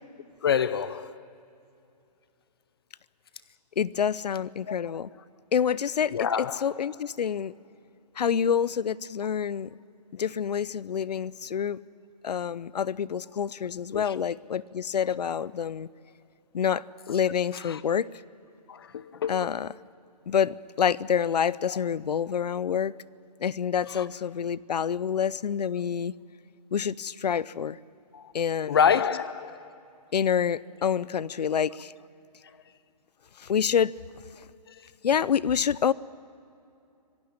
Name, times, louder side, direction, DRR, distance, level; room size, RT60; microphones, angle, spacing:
voice 1, 0.4-1.2 4.7-5.1 6.1-6.6 13.9-14.2 17.6-17.8 18.7-19.4 21.7-21.8 23.9-24.1 28.1-28.3 28.7-29.7 34.7-34.9, left 7 dB, 35° left, 0.5 m, -27 dB
voice 2, 3.8-5.1 5.5-7.5 8.2-9.7 10.1-11.8 12.2-15.9 16.5-18.1 19.3-19.7 20.3-22.9 23.4-26.1 26.7-27.8 28.3-28.8 30.1-31.9 33.4-33.9 35.0-35.9, left 8 dB, 75° left, 0.7 m, -27 dB
26.0 x 16.5 x 8.8 m
hypercardioid pair, 165°, 21 cm